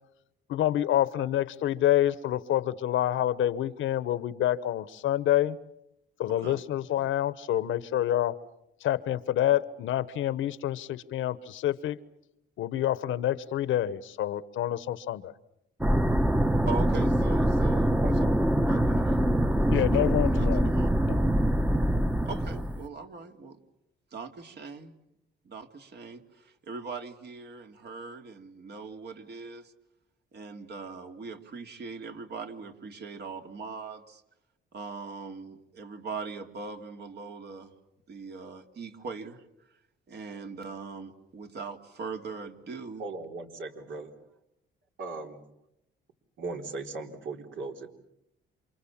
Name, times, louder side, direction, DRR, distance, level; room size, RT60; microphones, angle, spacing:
voice 1, 0.5-5.6 6.2-8.3 8.8-12.0 12.6-15.3 19.7-20.7 21.1-21.2, left 12 dB, 80° left, 16 dB, 1.1 m, -27 dB
voice 2, 6.3-6.6 16.7-18.0 18.7-19.2 19.6-19.8 20.2-20.9 22.2-23.6 24.1-24.9 25.4-29.7 30.3-34.2 34.7-37.7 38.1-39.4 40.1-43.0, right 4 dB, 55° right, 5 dB, 2.8 m, -40 dB
sound 1, 15.8-22.9, right 1 dB, 5° right, 1.0 m, -24 dB
voice 3, 43.0-44.1 45.0-45.4 46.4-47.9, right 3 dB, 75° right, 3 dB, 4.1 m, -38 dB
28.5 x 26.5 x 7.3 m, 0.82 s
cardioid pair, 90°, 20 cm